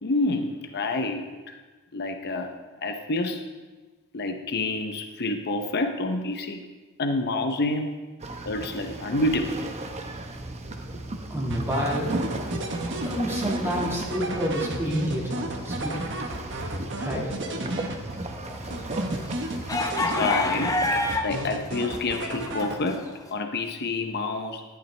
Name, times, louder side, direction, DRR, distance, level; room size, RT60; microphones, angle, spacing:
voice 1, 0.0-1.5 1.9-2.5 2.8-3.4 4.1-6.6 7.0-7.9 8.4-9.6 20.0-23.0 23.3-24.6, left 2 dB, 50° left, 5 dB, 0.7 m, -28 dB
sound 1, 8.2-21.2, right 2 dB, 30° right, 0.8 m, -35 dB
voice 2, 11.3-12.1 13.0-16.1 16.6-17.3, equal, 10° right, -4 dB, 1.7 m, -29 dB
sound 2, 11.5-18.3 18.7-20.7 21.1-23.1, right 1 dB, 55° right, 1.2 m, -33 dB
sound 3, 18.3-21.5 21.8-23.1, left 2 dB, 15° left, 0.7 m, -28 dB
12.0 x 10.5 x 3.3 m, 1.3 s
head